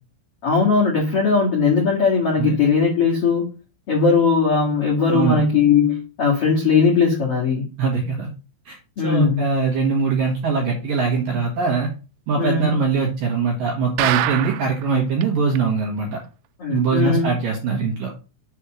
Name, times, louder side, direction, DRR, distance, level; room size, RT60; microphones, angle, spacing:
voice 1, 0.4-3.5 3.9-7.6 9.0-9.4 12.3-12.7 16.6-17.3, left 5 dB, 55° left, -4 dB, 1.6 m, -19 dB
voice 2, 7.8-8.3 8.7-8.8 9.0-11.9 12.3-16.2 16.7-18.1, right 4 dB, 60° right, 0 dB, 2.4 m, -22 dB
sound 1, 14.0-14.8 15.2-15.3 15.6-15.7 16.1-16.2, right 15 dB, 85° right, 3.2 m, -23 dB
7.2 x 4.3 x 6.1 m, 0.32 s
omnidirectional pair, 5.8 m